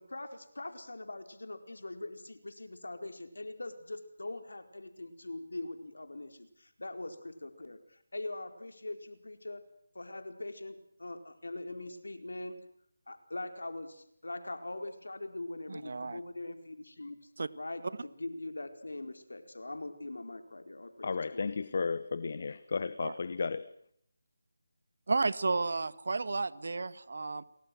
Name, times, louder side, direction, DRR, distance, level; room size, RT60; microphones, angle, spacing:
voice 1, 0.0-9.6 9.9-12.6 13.1-17.2 17.5-21.5, left 2 dB, 85° left, 8 dB, 4.5 m, -42 dB
voice 2, 15.7-16.2 17.4-17.5 23.0-23.1 25.1-27.4, right 3 dB, 60° right, 15 dB, 1.7 m, -32 dB
voice 3, 21.0-23.7, left 4 dB, 50° left, 15 dB, 1.4 m, -34 dB
30.0 x 24.0 x 6.3 m, 0.70 s
figure-of-eight pair, 165°, 0 cm